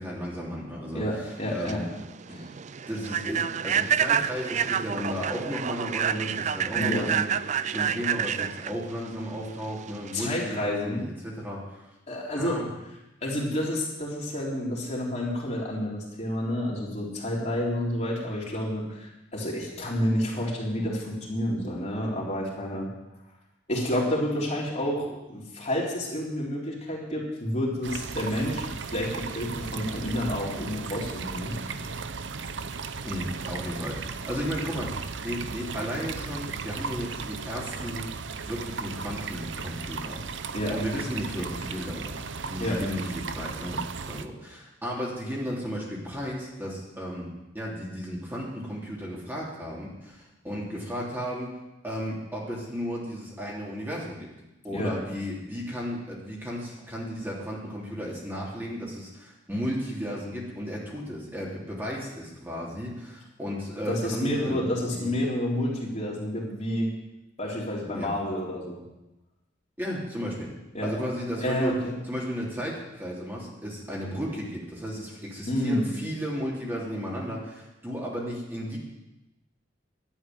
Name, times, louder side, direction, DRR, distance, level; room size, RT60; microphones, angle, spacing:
voice 1, 0.0-1.8 2.3-2.4 2.9-7.3 7.7-11.8 12.3-12.7 33.0-38.1 38.5-40.2 40.7-47.3 47.5-51.6 51.8-54.3 54.6-65.1 67.9-68.1 69.8-70.5 70.8-71.8 72.1-78.8, equal, 10° right, -5 dB, 3.2 m, -34 dB
voice 2, 0.9-1.8 2.3-2.5 6.8-7.1 10.1-11.1 12.1-12.6 13.2-22.9 23.7-31.6 40.5-40.7 42.6-42.8 54.7-54.9 63.9-66.9 67.4-68.8 70.7-70.9 71.4-71.9 75.5-75.9, left 1 dB, 40° left, -4 dB, 3.7 m, -29 dB
Human voice / Train, 1.4-10.3, right 8 dB, 40° right, 0.4 m, -28 dB
sound 1, 27.8-44.3, right 5 dB, 80° right, 0.8 m, -36 dB
11.5 x 8.9 x 9.3 m, 0.97 s
head